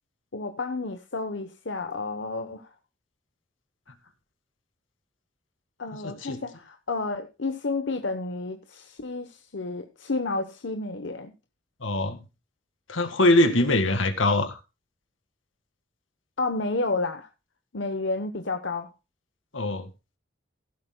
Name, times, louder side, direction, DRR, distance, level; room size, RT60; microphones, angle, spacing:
voice 1, 0.3-2.7 5.8-11.3 16.4-17.3 17.7-18.9, left 3 dB, 70° left, 0.9 m, -31 dB
voice 2, 6.0-6.4 11.8-12.2 12.9-14.6 19.5-19.9, left 1 dB, 90° left, 1.9 m, -22 dB
15.5 x 12.5 x 2.2 m
head